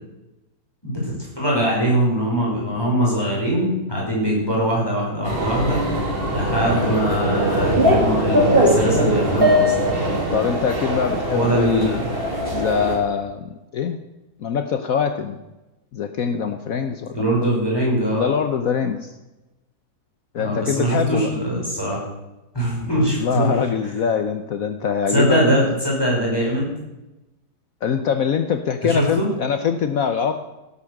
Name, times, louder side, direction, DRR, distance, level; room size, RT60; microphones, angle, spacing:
voice 1, 0.8-5.8 6.3-10.1 11.3-12.1 17.1-18.3 20.3-22.0 22.5-23.6 25.1-26.7 28.8-29.3, right 1 dB, 15° left, -4 dB, 5.2 m, -22 dB
sound 1, 5.2-13.0, equal, 35° right, 2.7 m, -21 dB
voice 2, 10.3-12.0 12.5-13.5 13.7-14.0 14.4-15.4 15.9-17.3 18.1-19.1 20.3-21.3 23.2-25.4 27.8-30.4, left 7 dB, 60° left, 9 dB, 1.2 m, -23 dB
17.0 x 8.6 x 6.5 m, 1.0 s
omnidirectional pair, 1.8 m